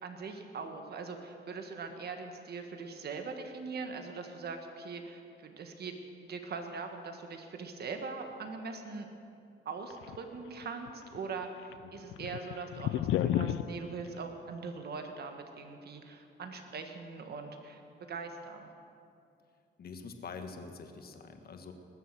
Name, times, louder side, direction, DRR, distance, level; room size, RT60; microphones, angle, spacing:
voice 1, 0.0-5.9 6.2-9.1 9.6-17.8 18.1-18.7, right 4 dB, 55° right, 5 dB, 1.6 m, -41 dB
sound 1, 9.9-10.9 11.1-11.2 11.6-13.7, left 12 dB, 80° left, 0.5 m, -31 dB
voice 2, 19.8-21.7, left 4 dB, 50° left, 6 dB, 1.5 m, -45 dB
20.0 x 7.4 x 7.6 m, 2.6 s
cardioid pair, 90°, 20 cm